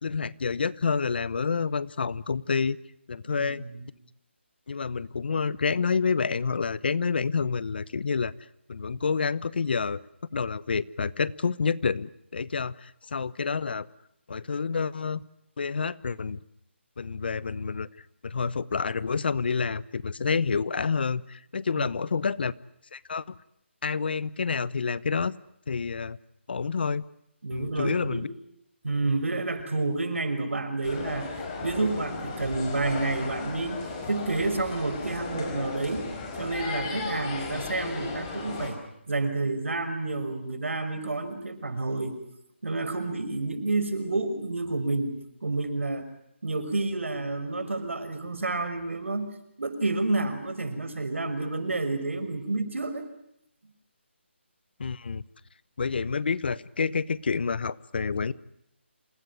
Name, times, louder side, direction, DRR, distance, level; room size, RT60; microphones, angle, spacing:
voice 1, 0.0-2.8 3.1-3.6 4.7-8.3 8.7-10.0 10.3-13.9 14.3-15.2 15.6-16.4 17.0-17.9 18.2-22.5 22.9-23.2 23.8-25.4 25.7-26.2 26.5-27.0 27.5-28.3 54.8-55.2 55.8-58.3, left 5 dB, 55° left, 19 dB, 1.0 m, -28 dB
voice 2, 3.3-3.9 21.8-21.9 27.4-28.3 28.8-31.3 31.6-36.1 36.4-38.8 39.1-42.2 42.6-46.0 46.4-49.3 49.6-53.1, right 2 dB, 80° right, 10 dB, 5.7 m, -29 dB
sound 1, 30.8-38.7, left 3 dB, 20° left, 5.3 m, -35 dB
28.0 x 19.0 x 9.7 m, 0.79 s
figure-of-eight pair, 165°, 7 cm